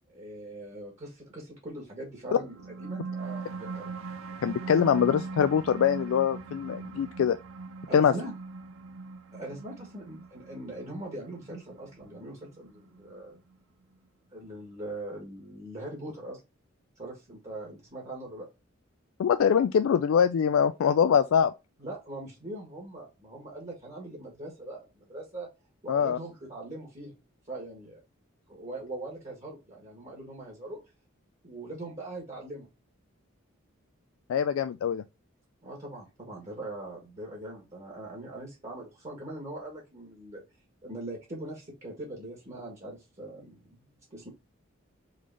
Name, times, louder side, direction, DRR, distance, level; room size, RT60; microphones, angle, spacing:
voice 1, 0.1-3.9 7.9-8.3 9.3-13.4 14.3-16.4 17.0-18.5 21.8-25.5 25.8-27.1 27.5-28.0 28.5-30.8 31.4-32.7 35.6-40.4 40.8-43.8 44.1-44.3, right 1 dB, 35° right, 1.5 m, -41 dB
sound 1, 2.4-13.4, right 4 dB, 80° right, 0.5 m, -40 dB
voice 2, 4.4-7.4 7.9-8.1 19.2-21.5 25.9-26.2 34.3-35.0, left 7 dB, 80° left, 0.3 m, -23 dB
3.9 x 3.2 x 3.7 m
head